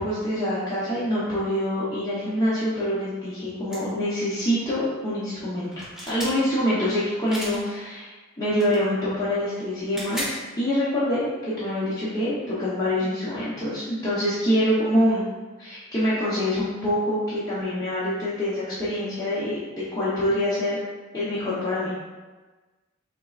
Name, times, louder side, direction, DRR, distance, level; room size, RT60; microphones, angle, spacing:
voice 1, 0.0-5.7 6.1-8.1 8.4-15.2 15.6-20.8 21.1-21.9, left 1 dB, 20° left, -12 dB, 0.8 m, -25 dB
sound 1, 3.7-3.8 5.6-6.3 7.3-7.6 8.5-8.8 9.8-10.4, equal, 5° right, 1.2 m, -33 dB
4.1 x 3.6 x 2.4 m, 1.3 s
head